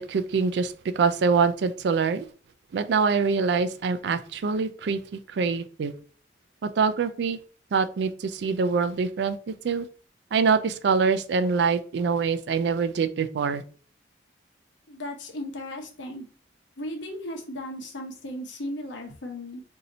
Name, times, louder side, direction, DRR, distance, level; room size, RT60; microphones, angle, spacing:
voice 1, 0.0-2.3 2.7-5.9 6.6-7.4 7.7-9.4 9.6-9.9 10.3-13.6, right 5 dB, 70° right, 11 dB, 0.3 m, -24 dB
voice 2, 14.9-16.3 16.8-19.6, left 1 dB, 90° left, 3 dB, 0.9 m, -36 dB
2.7 x 2.6 x 4.1 m, 0.41 s
head